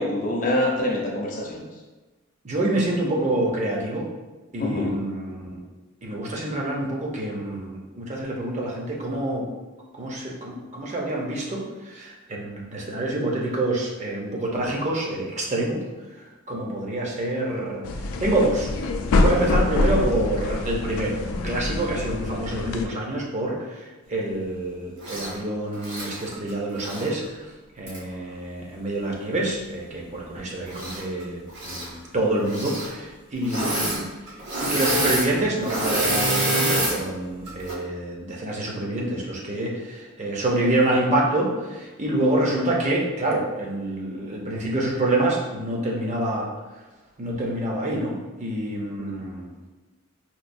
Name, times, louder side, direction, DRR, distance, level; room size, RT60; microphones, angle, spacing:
voice 1, 0.0-1.6 4.6-5.0 49.0-49.1, left 1 dB, 40° left, -1 dB, 0.6 m, -25 dB
voice 2, 2.4-4.1 4.5-5.5 6.0-9.5 10.0-15.8 16.5-17.8 18.2-18.7 19.2-27.5 27.8-34.1 34.6-46.5 47.2-49.5, right 1 dB, 35° right, -2 dB, 0.6 m, -27 dB
sound 1, 17.8-22.9, left 2 dB, 80° left, 0.4 m, -25 dB
Engine / Mechanisms, 25.0-25.3 25.8-27.1 27.9-28.0 30.7-31.2 31.5-31.9 32.4-32.9 33.4-34.0 34.3-37.0 37.5-37.7, right 1 dB, 55° right, 1.1 m, -26 dB
4.4 x 2.3 x 2.6 m, 1.2 s
head